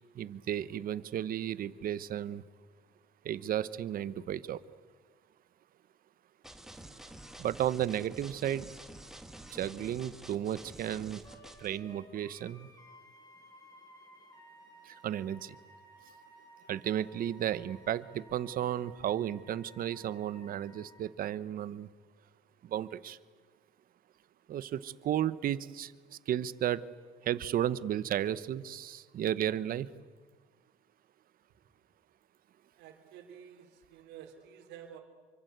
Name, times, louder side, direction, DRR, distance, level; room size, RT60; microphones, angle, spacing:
voice 1, 0.2-2.4 3.2-4.6 7.4-8.7 9.5-11.2 11.6-12.7 15.0-15.6 16.7-21.9 22.7-23.2 24.5-25.9 26.3-26.8 27.3-29.9, right 11 dB, 60° right, 16 dB, 1.1 m, -33 dB
sound 1, 6.4-11.8, right 1 dB, 5° right, 2.3 m, -49 dB
Wind instrument woodwind instrument, 11.2-21.1, equal, 20° left, 4.4 m, -57 dB
voice 2, 32.7-35.0, right 9 dB, 90° right, 3 dB, 3.7 m, -51 dB
27.0 x 24.5 x 8.2 m, 1.4 s
cardioid pair, 110°, 17 cm